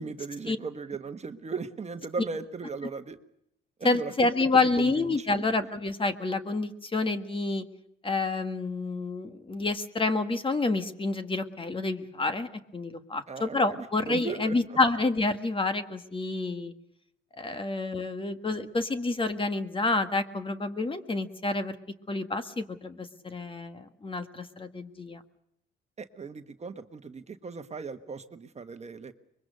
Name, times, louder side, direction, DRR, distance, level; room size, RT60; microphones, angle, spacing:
voice 1, 0.0-3.2 3.8-4.5 4.8-5.4 13.3-14.8 17.5-17.6 26.0-29.1, right 5 dB, 35° right, 8 dB, 1.3 m, -38 dB
voice 2, 3.8-7.6 8.0-16.7 17.4-21.7 22.1-25.2, left 3 dB, 25° left, 9 dB, 1.6 m, -28 dB
24.5 x 22.0 x 6.6 m, 0.76 s
cardioid pair, 90°, 20 cm